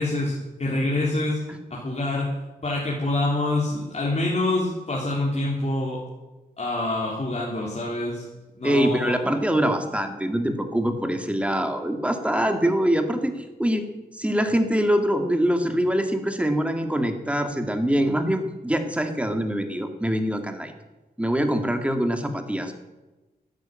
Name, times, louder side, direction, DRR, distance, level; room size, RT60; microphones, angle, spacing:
voice 1, 0.0-1.4 1.7-2.3 2.6-6.0 6.6-8.3 8.6-9.2, left 2 dB, 40° left, -5 dB, 3.5 m, -26 dB
voice 2, 8.6-13.9 14.1-20.7 21.2-22.7, equal, 5° right, 6 dB, 2.1 m, -24 dB
13.0 x 9.7 x 8.9 m, 1.1 s
wide cardioid pair, 85°, 17 cm